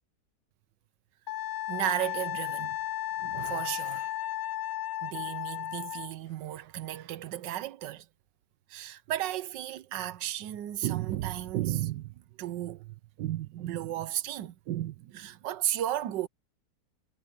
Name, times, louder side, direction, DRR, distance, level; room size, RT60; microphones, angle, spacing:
Wind instrument woodwind instrument, 1.3-6.1, left 14 dB, 65° left, 1.0 m, -34 dB
voice 1, 1.7-2.8 3.2-4.2 5.0-8.1 8.7-16.3, right 13 dB, 80° right, 1.4 m, -34 dB
omnidirectional pair, 1.9 m